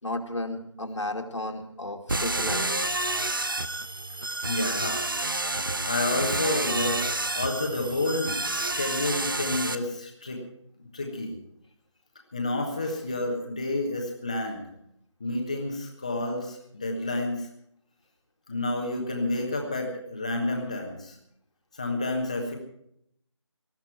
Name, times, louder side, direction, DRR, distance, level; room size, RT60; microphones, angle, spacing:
voice 1, 0.0-2.8, left 1 dB, 70° left, 3 dB, 2.5 m, -33 dB
sound 1, 2.1-9.8, right 2 dB, 40° right, 1.0 m, -29 dB
voice 2, 4.4-5.0 5.5-10.4 10.8-11.4 12.3-14.7 15.2-17.5 18.5-21.2 21.7-22.5, left 2 dB, 15° left, 2 dB, 1.3 m, -30 dB
19.5 x 13.5 x 4.6 m, 0.72 s
figure-of-eight pair, 175°, 16 cm